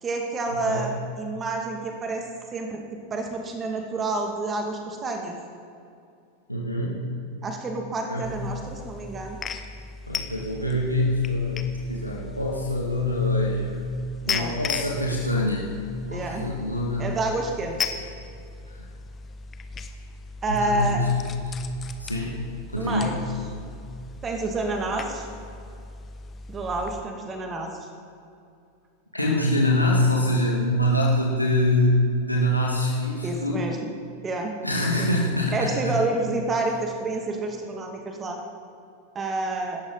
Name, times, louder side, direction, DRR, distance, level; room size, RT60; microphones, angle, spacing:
voice 1, 0.0-2.2 2.5-5.4 7.4-9.4 14.3-14.6 16.1-16.4 17.0-17.9 20.4-21.0 22.8-23.2 24.2-25.3 26.5-27.9 33.2-33.9 34.2-34.5 35.0-35.1 35.5-38.4 39.1-39.8, right 2 dB, 20° right, 3 dB, 2.4 m, -29 dB
voice 2, 0.5-0.9 6.5-7.1 8.1-8.4 10.1-11.6 11.9-13.7 14.3-15.7 16.1-17.0 20.5-21.3 22.0-22.4 22.7-23.2 29.1-32.0 32.3-33.7 34.6-36.0, left 1 dB, 85° left, -3 dB, 2.3 m, -24 dB
sound 1, 8.2-27.0, left 5 dB, 25° left, 1.2 m, -37 dB
26.0 x 13.5 x 4.1 m, 2.5 s
figure-of-eight pair, 90°, 0 cm